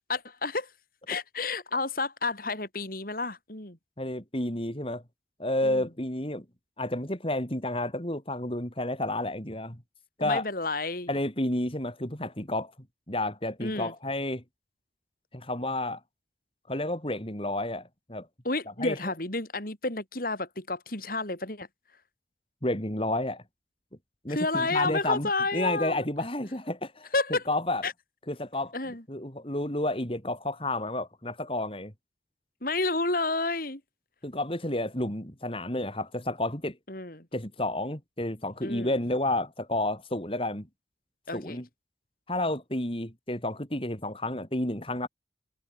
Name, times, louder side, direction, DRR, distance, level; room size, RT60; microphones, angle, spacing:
voice 1, 0.1-0.7 1.1-3.8 5.6-5.9 10.2-11.1 13.6-13.9 18.4-21.7 24.3-26.0 27.1-27.4 27.8-27.9 28.7-29.0 32.6-33.8 36.9-37.3 38.6-38.9 41.3-41.6, left 3 dB, 50° left, 4.6 m, -30 dB
voice 2, 4.0-5.0 5.4-6.4 6.8-9.8 10.2-10.5 11.1-12.7 13.1-14.4 15.3-16.0 16.7-18.3 18.8-19.1 22.6-23.4 24.2-27.1 27.5-27.8 28.3-28.7 29.1-31.9 34.2-36.8 37.3-40.7 41.3-41.7 42.3-45.1, left 1 dB, 30° left, 4.2 m, -30 dB
head